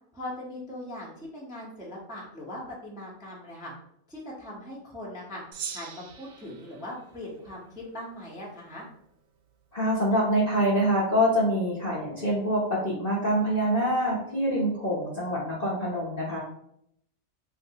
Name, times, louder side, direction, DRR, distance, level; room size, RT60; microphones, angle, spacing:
voice 1, 0.1-3.7 4.1-5.4 5.7-8.9, left 1 dB, 5° right, -4 dB, 0.5 m, -40 dB
Gong, 5.5-8.2, right 7 dB, 80° right, 1.0 m, -42 dB
voice 2, 9.7-16.4, equal, 40° left, -6 dB, 0.7 m, -25 dB
3.5 x 2.6 x 2.8 m, 0.72 s
omnidirectional pair, 1.5 m